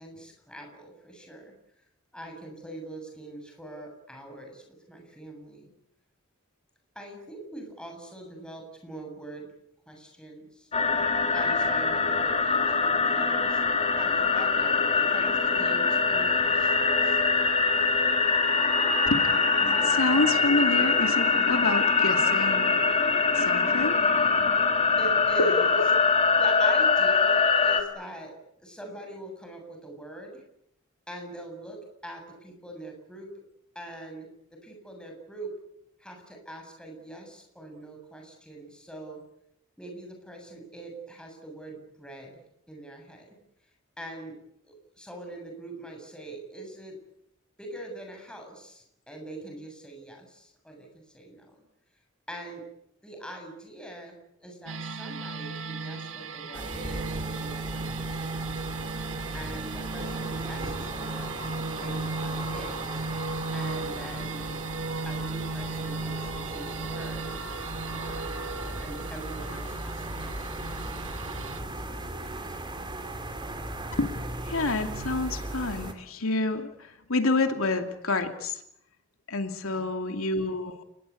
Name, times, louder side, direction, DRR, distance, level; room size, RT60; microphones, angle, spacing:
voice 1, 0.0-1.5 2.1-5.7 6.9-9.5 9.9-10.7 11.3-17.2 25.0-25.8 26.4-28.3 28.6-30.4 31.1-33.3 33.7-35.5 36.0-39.2 39.8-43.4 44.0-44.4 44.6-47.0 47.6-51.6 52.3-52.6 53.0-58.5 59.3-61.4 61.8-63.0 63.5-64.6 65.1-68.4 68.8-70.6 71.7-72.8 79.7-80.2, right 1 dB, 5° left, 2 dB, 7.5 m, -43 dB
sound 1, 10.7-27.8, left 4 dB, 30° left, 3.0 m, -23 dB
voice 2, 19.6-22.7 23.3-24.0 25.4-25.8 74.0-74.2 74.4-78.6 79.3-80.8, left 2 dB, 80° left, 6 dB, 2.6 m, -28 dB
sound 2, 54.7-71.6, right 3 dB, 65° right, 1.7 m, -36 dB
sound 3, 56.5-75.9, right 1 dB, 25° right, 3.0 m, -37 dB
30.0 x 20.5 x 8.5 m, 0.78 s
head